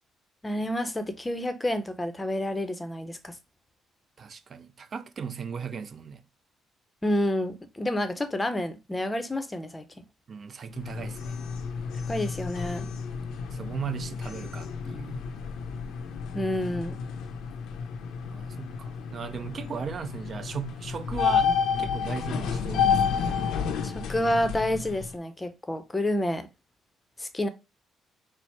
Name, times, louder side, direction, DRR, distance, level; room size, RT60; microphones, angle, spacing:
voice 1, 0.4-3.3 7.0-9.8 12.1-12.9 16.3-17.0 23.8-26.5 27.2-27.5, left 1 dB, 15° left, 0.6 m, -29 dB
voice 2, 4.2-6.2 10.3-11.4 13.5-15.3 18.2-21.5 21.8-23.3, right 6 dB, 45° right, 0.4 m, -37 dB
sound 1, 10.7-25.1, left 6 dB, 80° left, 0.6 m, -31 dB
4.2 x 2.0 x 4.5 m
cardioid pair, 105°, 0 cm